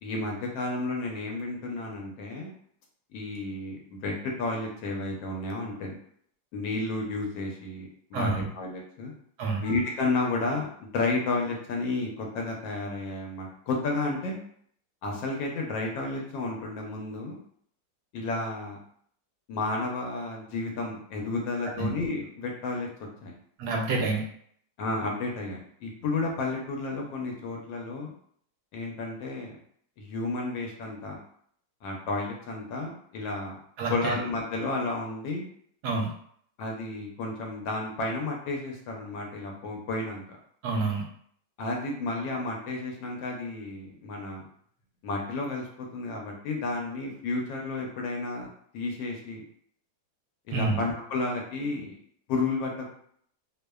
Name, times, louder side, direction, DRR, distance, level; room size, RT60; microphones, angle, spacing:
voice 1, 0.0-2.5 3.1-6.0 6.5-9.1 9.6-14.4 15.0-17.4 18.1-18.8 19.5-22.9 23.2-23.3 24.8-28.1 28.7-29.6 30.0-31.2 31.8-33.6 33.9-35.4 36.6-40.2 41.6-44.5 45.0-49.4 50.5-51.9 52.3-52.9, left 3 dB, 90° left, 0 dB, 1.3 m, -32 dB
voice 2, 8.1-8.5 9.4-9.6 21.8-21.9 23.6-24.2 33.8-34.2 35.8-36.1 40.6-41.0 50.5-50.8, right 3 dB, 70° right, 0 dB, 1.0 m, -28 dB
3.1 x 2.1 x 2.2 m, 0.63 s
omnidirectional pair, 2.0 m